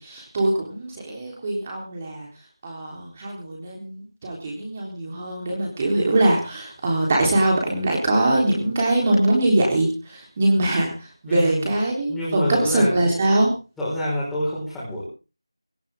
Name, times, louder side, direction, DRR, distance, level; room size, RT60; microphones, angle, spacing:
voice 1, 0.0-2.3 2.6-10.9 11.2-13.5, right 1 dB, 20° right, 0 dB, 3.7 m, -22 dB
voice 2, 11.3-11.7 12.1-13.0 13.8-15.0, equal, ahead, -10 dB, 4.9 m, -27 dB
17.5 x 16.0 x 3.7 m, 0.33 s
figure-of-eight pair, 170°, 3 cm